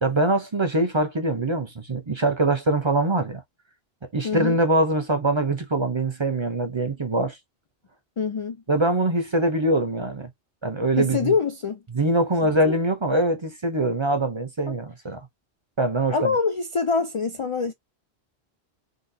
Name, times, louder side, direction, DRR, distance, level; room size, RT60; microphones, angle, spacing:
voice 1, 0.0-3.4 4.1-7.4 8.7-10.3 10.6-11.3 11.9-15.2 15.8-16.3, right 1 dB, 30° right, 0.6 m, -23 dB
voice 2, 4.2-4.6 8.2-8.6 11.0-11.8 12.4-12.8 14.7-14.8 16.1-17.7, left 5 dB, 55° left, 0.3 m, -25 dB
3.7 x 2.3 x 2.6 m
omnidirectional pair, 1.1 m